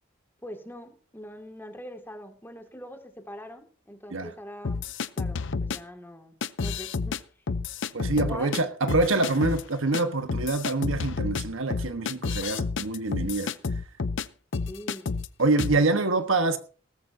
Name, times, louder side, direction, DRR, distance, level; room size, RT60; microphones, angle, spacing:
voice 1, 0.4-4.9 5.2-7.2 8.1-8.6 14.7-15.1 15.7-16.1, equal, 10° left, 2.1 m, -42 dB
sound 1, 4.6-5.8 6.4-7.2 7.5-8.6 8.9-9.6 9.9-10.0 10.3-14.3 14.5-15.3 15.6-15.8, left 4 dB, 65° left, 0.6 m, -30 dB
voice 2, 7.9-13.5 15.4-16.6, right 3 dB, 70° right, 1.3 m, -25 dB
17.5 x 14.5 x 2.7 m
head